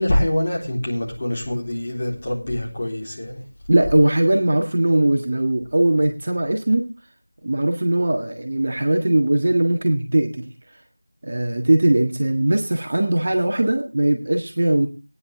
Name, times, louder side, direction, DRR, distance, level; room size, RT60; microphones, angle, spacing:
voice 1, 0.0-3.4, left 1 dB, 25° left, -4 dB, 3.7 m, -24 dB
voice 2, 3.7-6.9 7.4-10.4 11.2-14.9, right 1 dB, 35° right, 3 dB, 1.6 m, -20 dB
18.5 x 9.9 x 3.5 m, 0.30 s
figure-of-eight pair, 175°, 0 cm